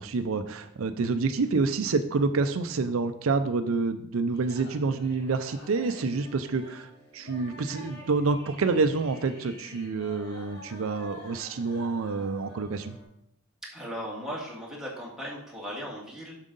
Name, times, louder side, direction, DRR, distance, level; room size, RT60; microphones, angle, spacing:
voice 1, 0.0-6.9 7.1-13.0, right 4 dB, 75° right, 9 dB, 0.5 m, -28 dB
sound 1, 4.3-13.0, left 1 dB, 50° left, 1.8 m, -49 dB
voice 2, 13.7-16.3, equal, ahead, -5 dB, 2.0 m, -37 dB
7.4 x 6.2 x 3.9 m, 0.75 s
head